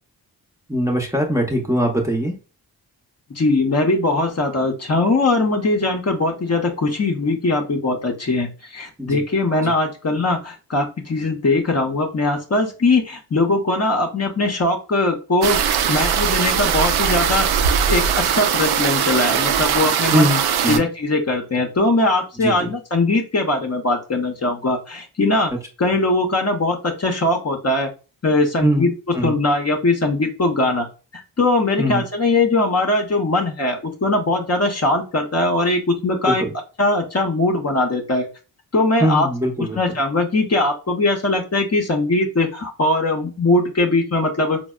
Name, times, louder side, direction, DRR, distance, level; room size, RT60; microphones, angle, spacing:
voice 1, 0.7-2.4 9.0-9.2 9.6-9.7 20.1-20.9 22.4-22.7 25.5-25.6 28.6-29.4 31.8-32.0 36.2-36.5 39.0-40.0, equal, 5° right, 0 dB, 0.7 m, -21 dB
voice 2, 3.4-15.6 15.9-17.5 17.9-20.3 20.7-25.5 25.8-27.9 28.2-28.9 29.2-30.9 31.1-36.4 36.8-38.3 38.7-39.3 39.8-44.6, left 2 dB, 35° left, 3 dB, 0.7 m, -20 dB
sound 1, 15.4-20.8, right 8 dB, 60° right, 0.5 m, -20 dB
4.0 x 2.1 x 2.3 m, 0.33 s
supercardioid pair, 45°, 44 cm